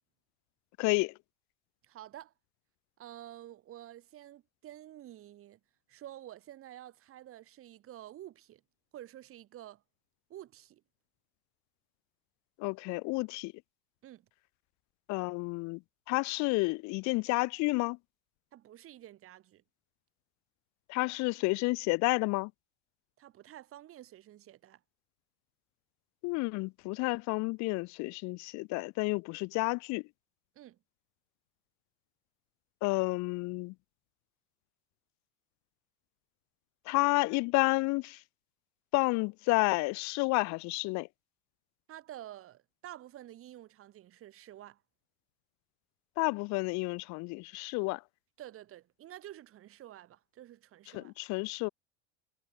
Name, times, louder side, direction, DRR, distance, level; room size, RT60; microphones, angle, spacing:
voice 1, 0.8-1.1 12.6-13.5 15.1-15.8 16.1-18.0 20.9-22.5 26.2-30.0 32.8-33.7 36.9-38.2 38.9-41.1 46.2-48.0 50.9-51.7, left 26 dB, 50° left, 1.0 m, -30 dB
voice 2, 1.8-2.3 3.0-5.6 5.9-8.6 8.9-9.8 10.3-10.8 14.0-14.3 18.5-19.6 23.2-24.8 30.5-30.8 41.9-44.8 48.4-51.1, right 13 dB, 35° right, 2.7 m, -50 dB
supercardioid pair, 125°, 37 cm